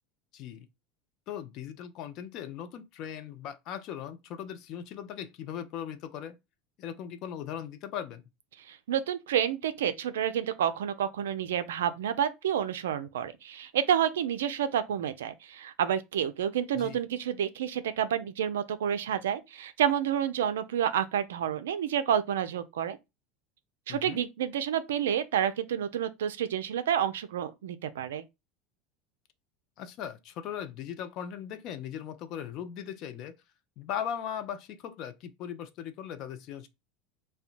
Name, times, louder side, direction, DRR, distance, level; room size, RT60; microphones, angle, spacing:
voice 1, 0.3-0.7 1.3-6.4 6.8-8.2 16.7-17.0 23.9-24.2 29.8-33.3 33.8-36.7, left 9 dB, 55° left, 0.4 m, -38 dB
voice 2, 8.6-23.0 23.9-28.2, right 9 dB, 80° right, 0.3 m, -29 dB
2.7 x 2.1 x 2.5 m
hypercardioid pair, 80°, 0 cm